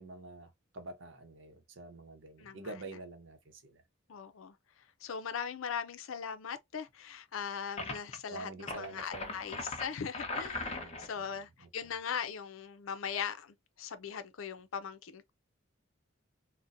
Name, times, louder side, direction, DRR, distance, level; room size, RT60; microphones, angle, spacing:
voice 1, 0.0-3.8 8.3-9.4 10.7-11.7, right 2 dB, 65° right, 0.8 m, -47 dB
voice 2, 2.4-2.7 4.1-4.5 5.0-15.3, left 7 dB, 85° left, 0.5 m, -40 dB
sound 1, 7.8-8.2 8.6-11.1, left 2 dB, 30° left, 0.9 m, -39 dB
4.0 x 2.1 x 2.5 m
head